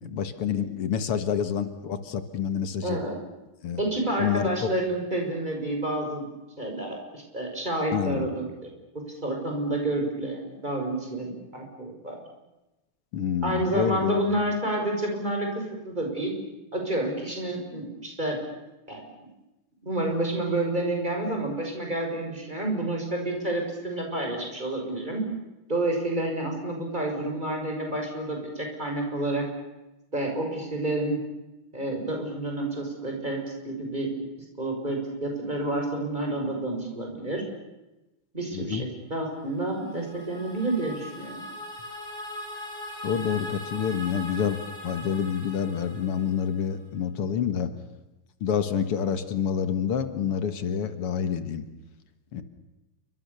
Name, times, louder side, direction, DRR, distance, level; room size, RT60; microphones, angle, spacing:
voice 1, 0.0-3.0 3.6-3.8 4.2-4.5 7.9-8.3 13.1-14.2 38.5-38.8 43.0-44.6 44.8-47.7 48.4-51.6 52.3-52.4, left 7 dB, 90° left, 10 dB, 2.6 m, -28 dB
voice 2, 2.8-3.2 3.8-6.2 6.6-8.7 9.2-12.2 13.4-16.3 16.7-18.4 18.9-19.0 19.8-25.2 25.7-29.4 30.1-31.2 31.7-33.4 33.6-34.1 34.6-37.4 38.3-41.4, right 1 dB, 20° right, 1 dB, 6.3 m, -29 dB
sound 1, 39.6-46.7, left 1 dB, 20° left, 4.8 m, -40 dB
29.0 x 24.5 x 7.1 m, 1.0 s
omnidirectional pair, 2.4 m